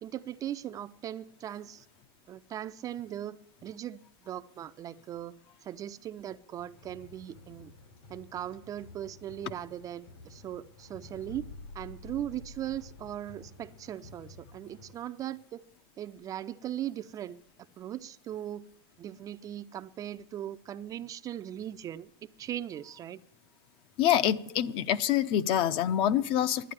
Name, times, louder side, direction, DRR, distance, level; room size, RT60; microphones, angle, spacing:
voice 1, 0.0-1.9 2.3-4.0 4.3-5.3 5.6-7.7 8.1-11.5 11.7-15.6 16.0-17.4 17.8-18.7 19.0-23.2, right 11 dB, 25° right, 11 dB, 0.4 m, -39 dB
sound 1, 6.6-14.9, left 3 dB, 85° left, 4.6 m, -50 dB
voice 2, 24.0-26.7, left 10 dB, 40° left, 13 dB, 0.7 m, -26 dB
11.0 x 9.3 x 10.0 m, 0.67 s
supercardioid pair, 130°, 13 cm